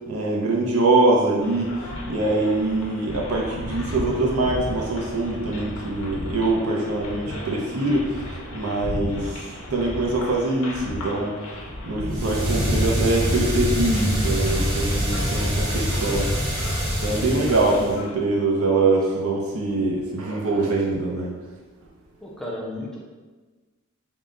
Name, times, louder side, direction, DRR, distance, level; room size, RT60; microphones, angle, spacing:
voice 1, 0.1-11.4 11.8-16.3 17.0-21.3, right 2 dB, 85° right, -2 dB, 0.5 m, -23 dB
sound 1, 1.4-18.2, left 1 dB, 70° left, 0.7 m, -35 dB
sound 2, 12.1-18.0, equal, 55° right, 1.3 m, -25 dB
voice 2, 22.2-23.0, left 1 dB, 5° left, -4 dB, 0.4 m, -33 dB
3.7 x 2.1 x 3.7 m, 1.3 s
head